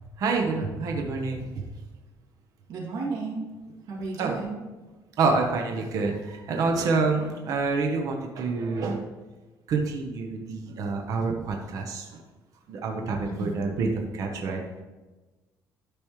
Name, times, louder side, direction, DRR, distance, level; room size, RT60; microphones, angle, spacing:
voice 1, 0.2-1.6 4.2-4.3 5.2-9.0 9.7-12.2 12.7-14.6, right 4 dB, 55° right, 2 dB, 1.1 m, -27 dB
voice 2, 2.7-3.5 3.9-4.6 13.2-13.6, right 4 dB, 70° right, -3 dB, 2.6 m, -33 dB
12.5 x 5.2 x 3.2 m, 1.2 s
cardioid pair, 140°, 7 cm